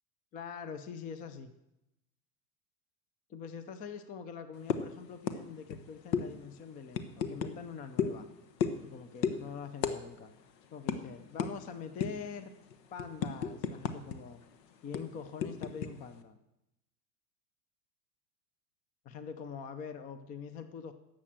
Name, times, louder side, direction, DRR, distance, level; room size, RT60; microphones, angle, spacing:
voice 1, 0.3-1.5 3.3-8.3 8.8-10.3 10.7-12.5 12.9-14.4 14.8-16.4 19.0-20.9, left 6 dB, 20° left, 10 dB, 0.4 m, -44 dB
sound 1, 4.7-4.9 5.3-5.4 5.7-5.8 6.1-6.3 6.9-7.5 8.0-8.2 8.6-8.9 9.2-9.4 9.8-10.0 10.2-10.4 10.9-11.0 11.4-11.5 12.0-12.3 12.7-14.2 14.4-14.5 14.9-15.9, left 7 dB, 85° left, 1.2 m, -32 dB
11.0 x 7.5 x 7.3 m, 0.89 s
supercardioid pair, 135°, 49 cm